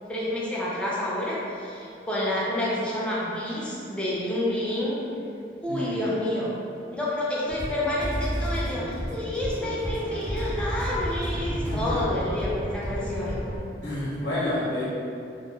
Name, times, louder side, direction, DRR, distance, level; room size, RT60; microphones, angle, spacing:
voice 1, 0.1-5.0 5.6-6.6 6.9-13.4, left 1 dB, 5° left, -7 dB, 0.4 m, -29 dB
voice 2, 5.7-6.0 11.5-12.0 13.8-14.9, left 1 dB, 85° left, -8 dB, 0.5 m, -30 dB
sound 1, 7.5-13.6, equal, 70° right, 0.8 m, -31 dB
2.1 x 2.1 x 3.2 m, 2.5 s
head